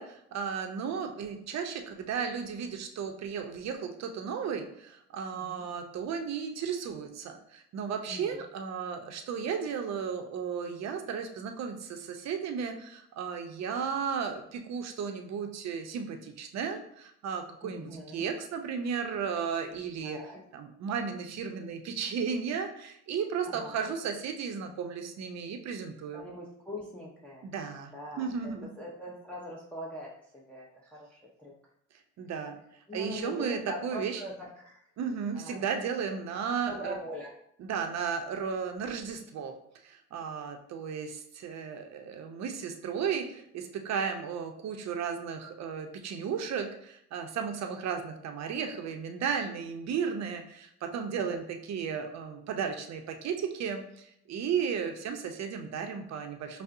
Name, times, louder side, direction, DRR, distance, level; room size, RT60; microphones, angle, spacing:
voice 1, 0.0-20.2 20.5-26.2 27.4-27.9 28.2-28.7 32.2-32.6 32.9-34.2 35.0-37.0 37.6-39.5 39.8-56.6, right 6 dB, 60° right, 5 dB, 0.6 m, -34 dB
voice 2, 5.3-5.6 8.1-8.4 17.6-18.3 20.0-20.4 23.5-23.9 26.1-27.5 27.9-31.5 32.9-34.9 35.3-35.6 36.7-37.3 51.3-51.4, left 1 dB, 5° left, -5 dB, 0.6 m, -42 dB
5.3 x 2.0 x 2.5 m, 0.72 s
cardioid pair, 90°, 30 cm